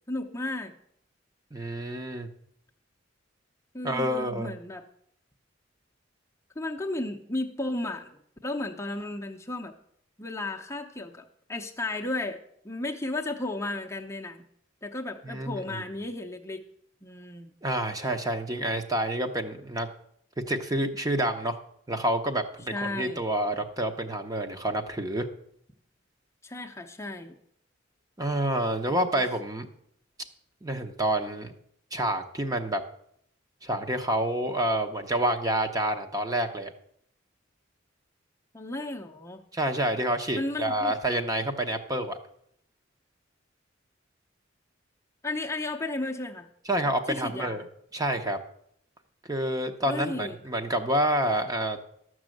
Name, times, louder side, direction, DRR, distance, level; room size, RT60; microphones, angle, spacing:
voice 1, 0.1-0.7 3.7-4.8 6.6-9.7 10.2-12.4 12.6-14.4 14.8-16.6 17.0-17.5 22.7-23.3 26.4-27.4 28.9-29.2 38.5-39.4 40.4-40.9 45.2-46.5 46.8-47.6 49.9-50.4, left 2 dB, 15° left, 2 dB, 0.8 m, -34 dB
voice 2, 1.5-2.3 3.8-4.5 15.2-15.8 17.6-19.9 20.5-21.6 21.9-25.3 28.2-29.7 30.6-31.5 31.9-32.8 33.6-36.7 39.5-42.2 46.7-47.6 47.9-48.4 49.3-51.8, right 1 dB, 20° right, 6 dB, 0.8 m, -28 dB
12.5 x 6.2 x 7.7 m, 0.70 s
head